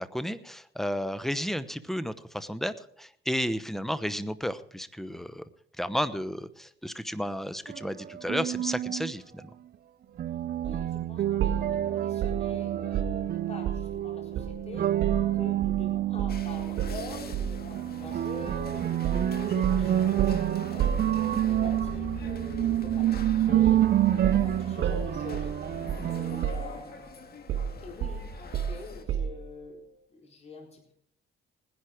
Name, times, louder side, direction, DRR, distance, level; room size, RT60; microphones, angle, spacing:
voice 1, 0.0-5.4 5.8-9.5, equal, ahead, 13 dB, 0.9 m, -32 dB
sound 1, 7.7-9.1 10.2-26.5, right 12 dB, 50° right, 0.5 m, -28 dB
voice 2, 10.6-14.9 15.3-19.0 19.3-23.9 24.3-25.5 26.1-27.1 27.8-29.8 30.1-30.9, left 2 dB, 30° left, 0 dB, 4.1 m, -45 dB
sound 2, 10.6-10.9 11.4-14.0 14.3-15.8 16.2-16.4 16.8-17.7 18.5-18.7 19.0-21.6 23.1-23.4 23.6-26.2 26.4-27.0 27.5-29.5, right 8 dB, 80° right, 2.2 m, -32 dB
sound 3, 16.3-29.0, left 4 dB, 50° left, 1.8 m, -43 dB
19.5 x 10.5 x 5.0 m, 0.71 s
cardioid pair, 90°, 20 cm